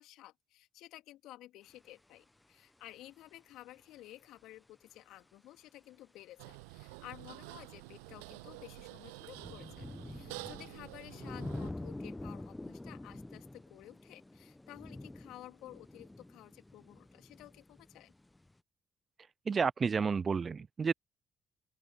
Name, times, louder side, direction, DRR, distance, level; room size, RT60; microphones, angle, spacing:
voice 1, 0.0-18.1, left 15 dB, 70° left, 2.8 m, -53 dB
sound 1, 1.7-1.8 7.5-18.5, left 2 dB, 15° left, 1.1 m, -47 dB
sound 2, 6.4-11.7, right 31 dB, 80° right, 8.0 m, -49 dB
voice 2, 19.5-20.9, right 5 dB, 40° right, 0.3 m, -31 dB
open air
hypercardioid pair, 50°, 0 cm